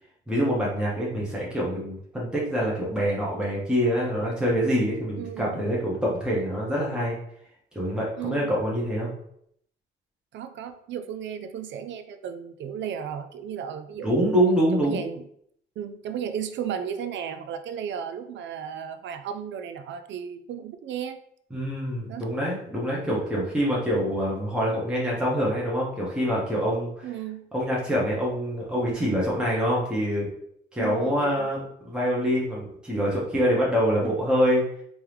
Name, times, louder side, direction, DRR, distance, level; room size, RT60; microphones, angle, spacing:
voice 1, 0.3-7.2 7.7-9.1 14.0-15.1 21.5-27.1 27.5-30.3 30.7-34.6, equal, 5° right, -5 dB, 1.3 m, -25 dB
voice 2, 5.2-5.6 8.2-8.5 10.3-14.3 14.7-15.2 15.8-21.2 22.1-22.3 27.0-27.5 30.8-31.5, right 8 dB, 65° right, 10 dB, 0.5 m, -34 dB
3.5 x 3.0 x 3.4 m, 0.70 s
cardioid pair, 90°, 20 cm